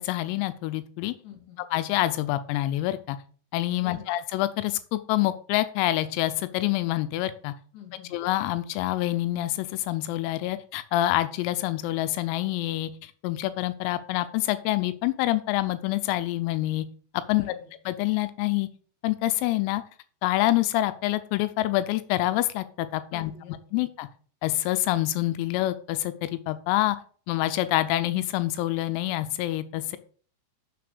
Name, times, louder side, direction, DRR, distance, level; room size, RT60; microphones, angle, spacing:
voice 1, 0.0-1.1 1.7-3.2 3.5-7.5 8.1-16.9 17.3-17.5 17.9-18.7 19.0-19.8 20.2-23.3 23.7-24.1 24.4-27.0 27.3-30.0, left 15 dB, 90° left, 12 dB, 3.4 m, -26 dB
voice 2, 1.2-1.6 3.8-4.1 7.7-8.2 17.3-17.7 23.1-23.8, left 7 dB, 50° left, 1 dB, 3.5 m, -46 dB
7.0 x 6.8 x 6.7 m, 0.43 s
omnidirectional pair, 6.0 m